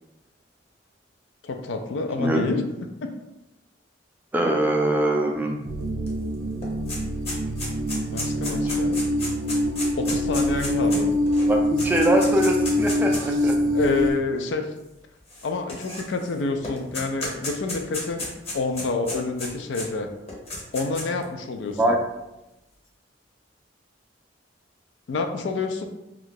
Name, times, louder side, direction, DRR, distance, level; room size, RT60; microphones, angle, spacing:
voice 1, 1.4-2.6 3.0-3.1 8.1-9.0 10.0-11.1 13.7-14.7 15.4-20.1 20.7-22.0 25.1-25.9, left 3 dB, 70° left, 6 dB, 0.4 m, -28 dB
voice 2, 2.2-2.5 4.3-5.6 8.9-9.0 11.5-13.6 21.8-22.0, right 1 dB, 10° right, 1 dB, 0.3 m, -22 dB
sound 1, 5.6-14.1, left 1 dB, 80° right, 0.4 m, -24 dB
sound 2, 6.1-6.2 6.4-13.3 14.1-14.2 15.3-16.3 16.6-19.9 20.3-21.2, left 2 dB, 35° left, 0.8 m, -33 dB
2.6 x 2.4 x 3.7 m, 0.93 s
head